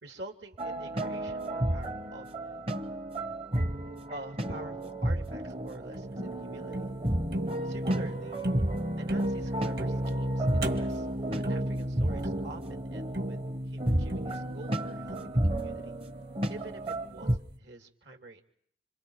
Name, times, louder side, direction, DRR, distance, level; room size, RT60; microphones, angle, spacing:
voice 1, 0.0-2.3 4.1-6.9 7.6-8.5 9.0-16.0 16.5-18.4, right 2 dB, 70° right, 4 dB, 2.8 m, -47 dB
sound 1, 0.6-17.4, right 1 dB, 30° right, 0.9 m, -33 dB
sound 2, 5.5-16.7, equal, 55° right, 1.9 m, -34 dB
27.0 x 27.0 x 4.9 m, 0.65 s
head